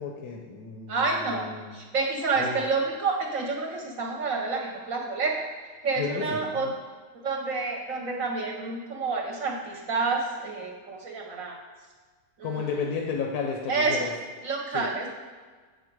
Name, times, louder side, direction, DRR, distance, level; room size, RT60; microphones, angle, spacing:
voice 1, 0.0-1.7 2.4-2.6 6.0-6.7 12.4-14.1 14.7-14.9, left 5 dB, 75° left, 1 dB, 1.2 m, -33 dB
voice 2, 0.9-5.4 5.8-6.7 7.2-11.6 12.4-12.7 13.7-14.1 14.4-15.1, right 4 dB, 60° right, 0 dB, 1.0 m, -29 dB
6.9 x 4.8 x 4.6 m, 1.5 s
omnidirectional pair, 1.7 m